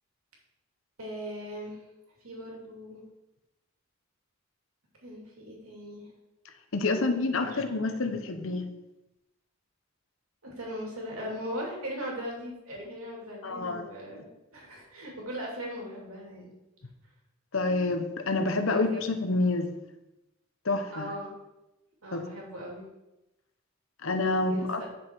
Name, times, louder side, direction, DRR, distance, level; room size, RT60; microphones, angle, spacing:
voice 1, 1.0-1.8 2.2-3.0 5.0-6.1 6.8-7.1 7.4-7.6 10.4-14.3 14.5-16.5 18.7-19.0 20.9-21.3 22.0-22.9 24.5-24.9, equal, 90° right, -1 dB, 2.7 m, -39 dB
voice 2, 6.7-8.7 13.4-13.8 17.5-19.8 20.6-21.1 22.1-22.2 24.0-24.8, left 2 dB, 70° left, 7 dB, 0.9 m, -28 dB
9.7 x 6.3 x 4.5 m, 0.97 s
head